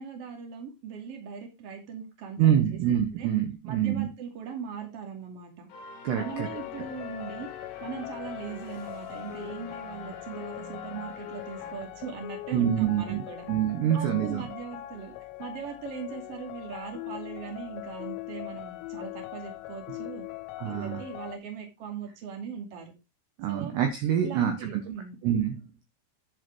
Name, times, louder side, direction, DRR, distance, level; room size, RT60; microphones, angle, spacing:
voice 1, 0.0-3.3 3.6-5.7 6.1-7.5 7.8-13.4 13.9-15.1 15.4-20.3 20.6-22.9 23.5-23.7 24.2-25.1, right 6 dB, 40° right, 2 dB, 2.3 m, -40 dB
voice 2, 2.4-4.1 6.0-6.5 12.5-14.5 20.6-21.0 23.4-24.8 25.2-25.6, right 10 dB, 75° right, 6 dB, 2.7 m, -26 dB
sound 1, 5.7-12.3, left 4 dB, 50° left, 2.5 m, -46 dB
sound 2, 6.2-21.4, left 16 dB, 80° left, 3.2 m, -41 dB
11.0 x 5.1 x 4.6 m, 0.26 s
omnidirectional pair, 6.0 m